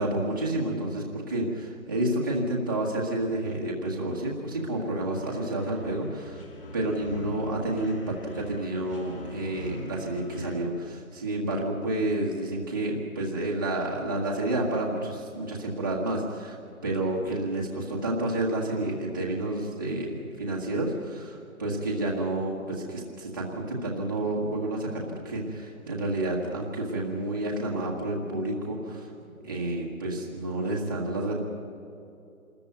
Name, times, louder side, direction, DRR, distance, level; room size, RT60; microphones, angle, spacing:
voice 1, 0.0-6.4 6.7-16.6 16.8-21.3 21.6-29.1 29.4-31.4, right 1 dB, 15° right, -4 dB, 1.5 m, -30 dB
sound 1, 3.8-10.6, left 1 dB, 40° left, 3.1 m, -43 dB
26.5 x 14.0 x 9.3 m, 2.7 s
hypercardioid pair, 180°, 44 cm